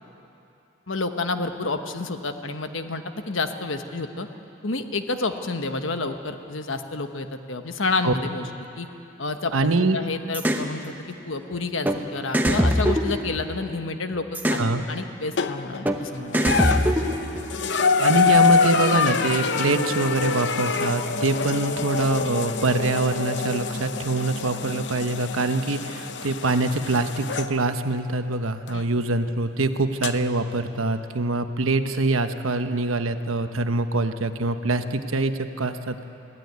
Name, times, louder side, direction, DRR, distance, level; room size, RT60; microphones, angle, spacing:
voice 1, 0.9-4.3 4.6-8.5 8.8-8.9 9.2-10.9 11.2-14.6 14.9-16.4 28.7-28.8, left 3 dB, 75° left, 7 dB, 1.2 m, -29 dB
voice 2, 9.5-10.0 14.6-14.8 18.0-36.1, right 2 dB, 90° right, 8 dB, 1.1 m, -24 dB
sound 1, 10.3-10.7 11.8-12.0 12.3-13.7 14.3-14.7 15.8-16.0 16.3-17.4, equal, 10° right, 1.1 m, -22 dB
sound 2, 15.4-15.8 16.3-27.5 28.7-28.8 30.0-30.1, left 5 dB, 55° left, 0.8 m, -25 dB
22.0 x 15.5 x 9.4 m, 2.9 s
head